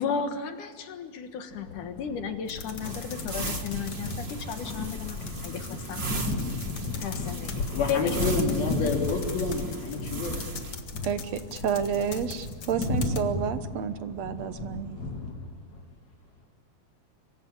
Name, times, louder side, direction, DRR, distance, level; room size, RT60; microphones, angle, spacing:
voice 1, 0.0-6.0 7.0-8.6, left 7 dB, 65° left, 7 dB, 2.8 m, -34 dB
sound 1, 1.5-15.8, left 3 dB, 30° left, 4.5 m, -35 dB
sound 2, 2.5-13.2, left 5 dB, 50° left, 2.3 m, -40 dB
sound 3, 2.8-10.8, right 3 dB, 35° right, 1.0 m, -38 dB
voice 2, 7.7-10.5, left 3 dB, 80° left, 0 dB, 5.4 m, -29 dB
voice 3, 11.0-15.0, right 7 dB, 65° right, 10 dB, 1.9 m, -30 dB
25.5 x 24.0 x 8.8 m, 1.5 s
omnidirectional pair, 4.2 m